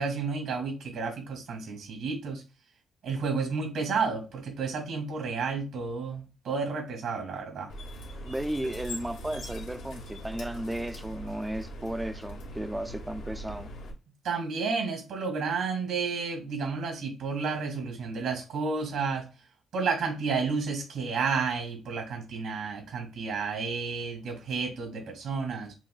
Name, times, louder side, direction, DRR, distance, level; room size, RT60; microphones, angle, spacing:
voice 1, 0.0-2.4 3.0-7.7 14.2-19.3 19.7-25.7, right 5 dB, 75° right, 2.3 m, -31 dB
sound 1, 7.7-13.9, equal, 90° left, 1.2 m, -41 dB
voice 2, 8.2-13.7, right 1 dB, 10° right, 0.4 m, -34 dB
7.3 x 2.6 x 2.3 m
cardioid pair, 90°, 0 cm